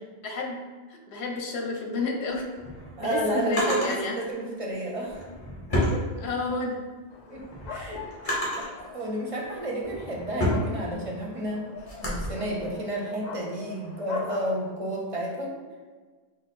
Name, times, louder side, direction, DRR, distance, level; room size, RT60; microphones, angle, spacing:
voice 1, 0.2-0.6 0.9-2.5 3.0-4.5 6.2-6.8, left 2 dB, 75° left, 2 dB, 1.0 m, -30 dB
Drawer open or close, 2.3-4.0 5.0-6.7 7.1-8.8 9.4-12.3, left 1 dB, 35° left, 1.2 m, -31 dB
voice 2, 3.0-5.2 5.9-6.0 7.3-8.7 8.9-11.7 12.0-15.6, right 1 dB, 40° right, -2 dB, 0.7 m, -31 dB
sound 1, 7.1-14.7, left 4 dB, 50° left, 0.5 m, -43 dB
5.0 x 2.0 x 4.2 m, 1.4 s
omnidirectional pair, 1.1 m